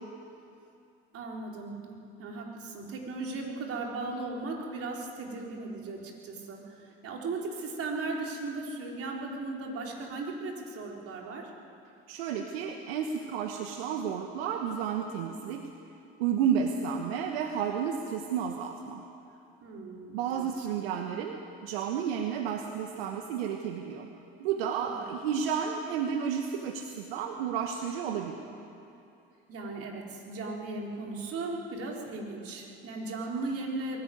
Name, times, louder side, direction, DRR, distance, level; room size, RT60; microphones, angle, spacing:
voice 1, 1.1-11.5 19.6-20.7 24.8-25.0 29.5-34.0, right 3 dB, 50° right, 0 dB, 4.0 m, -37 dB
voice 2, 12.1-15.7 16.2-19.0 20.1-21.4 21.6-24.1 24.4-28.6, right 7 dB, 80° right, 4 dB, 1.3 m, -31 dB
21.5 x 13.5 x 9.4 m, 2.6 s
hypercardioid pair, 80°, 30 cm